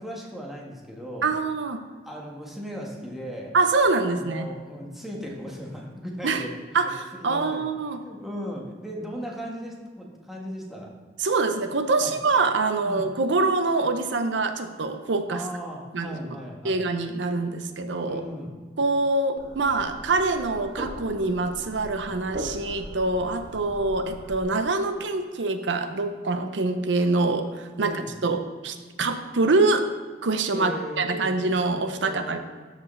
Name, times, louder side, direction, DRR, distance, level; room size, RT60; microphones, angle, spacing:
voice 1, 0.0-1.3 2.0-3.5 4.1-6.5 6.8-6.9 7.2-7.6 8.0-10.9 12.0-12.1 12.8-13.1 15.3-16.8 18.0-18.5 27.8-28.1 30.5-31.6 32.0-32.4, equal, ahead, -3 dB, 1.4 m, -37 dB
voice 2, 1.2-1.8 3.5-4.5 6.2-6.4 6.7-6.9 7.2-8.0 11.2-15.4 15.9-16.2 16.6-18.2 18.8-29.8 30.2-30.7 31.0-32.4, right 3 dB, 75° right, 8 dB, 0.7 m, -25 dB
sound 1, 19.4-24.4, equal, 55° right, 2.1 m, -39 dB
13.0 x 4.9 x 3.2 m, 1.5 s
head